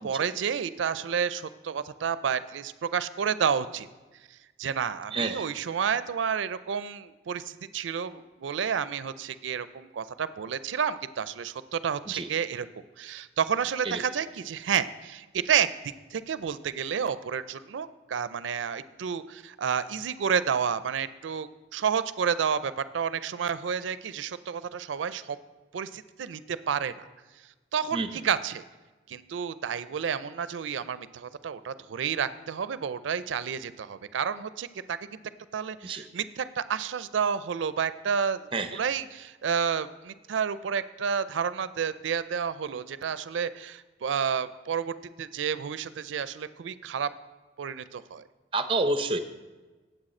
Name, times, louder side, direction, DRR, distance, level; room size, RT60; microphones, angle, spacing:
voice 1, 0.0-3.9 4.3-12.7 13.0-25.4 25.7-27.0 27.7-28.6 29.1-35.1 35.5-38.5 38.8-47.1 47.6-48.2, right 7 dB, 85° right, 14 dB, 0.4 m, -30 dB
voice 2, 5.1-5.5 12.1-12.3 13.8-14.0 27.9-28.1 35.8-36.0 38.5-38.8 48.5-49.2, right 2 dB, 30° right, 9 dB, 0.5 m, -28 dB
8.9 x 7.8 x 4.3 m, 1.2 s
head